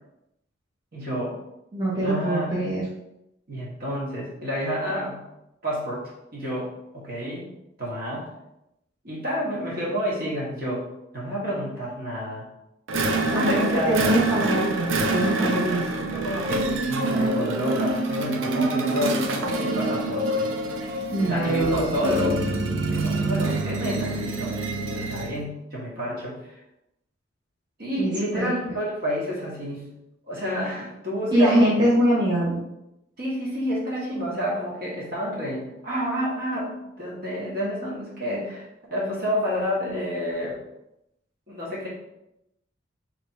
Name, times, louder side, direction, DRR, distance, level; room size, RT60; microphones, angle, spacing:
voice 1, 0.9-1.3 2.0-2.7 3.5-5.2 5.6-7.5 7.8-8.3 9.0-10.8 11.1-12.4 13.2-14.2 15.4-15.8 16.1-20.5 21.3-22.6 22.9-24.5 24.9-26.6 27.8-29.9 30.3-31.7 33.2-40.6 41.5-41.9, equal, 50° right, -5 dB, 1.4 m, -29 dB
voice 2, 1.7-2.8 13.3-15.8 21.1-21.8 28.0-28.5 31.3-32.6, right 1 dB, 20° right, -8 dB, 0.8 m, -23 dB
sound 1, 12.9-25.4, right 2 dB, 70° right, 0.5 m, -26 dB
3.4 x 3.1 x 4.1 m, 0.85 s
head